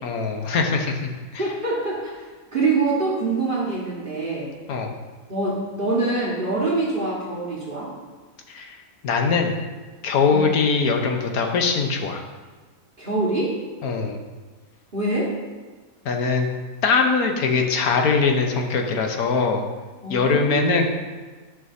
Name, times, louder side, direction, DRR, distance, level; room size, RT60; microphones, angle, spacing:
voice 1, 0.0-1.5 4.7-4.9 8.5-8.8 9.0-9.5 10.0-12.2 13.8-14.2 16.0-16.5 16.8-19.6 20.1-20.9, left 4 dB, 80° left, 3 dB, 1.3 m, -22 dB
voice 2, 1.4-4.5 5.3-7.9 10.3-10.5 13.0-13.5 14.9-15.3 20.0-20.9, right 3 dB, 40° right, -6 dB, 1.6 m, -25 dB
11.0 x 6.1 x 2.7 m, 1.4 s
omnidirectional pair, 1.5 m